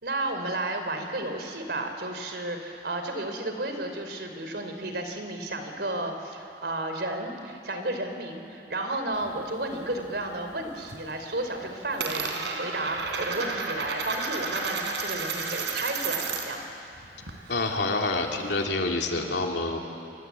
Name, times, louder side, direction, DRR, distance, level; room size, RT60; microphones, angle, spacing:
voice 1, 0.0-16.6, right 2 dB, 70° right, 6 dB, 3.4 m, -32 dB
Coin (dropping), 9.1-10.3 10.6-11.1 11.4-16.7 16.9-18.6, right 4 dB, 85° right, 3.6 m, -33 dB
voice 2, 17.5-19.8, left 2 dB, 80° left, 1 dB, 2.8 m, -27 dB
27.0 x 24.0 x 8.3 m, 2.8 s
head